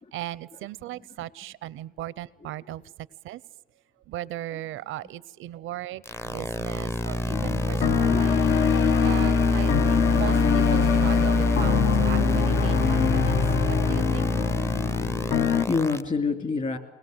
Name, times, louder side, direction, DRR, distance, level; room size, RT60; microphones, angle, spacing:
voice 1, 0.1-2.8 3.2-3.4 4.1-8.4 9.0-14.6, right 14 dB, 85° right, 0.6 m, -37 dB
sound 1, 6.1-16.0, equal, 15° left, 0.6 m, -26 dB
sound 2, 7.3-15.7, left 9 dB, 70° left, 0.8 m, -24 dB
voice 2, 8.1-8.5 15.3-16.8, left 4 dB, 40° left, 2.7 m, -28 dB
22.0 x 20.0 x 7.9 m
cardioid pair, 90°, 20 cm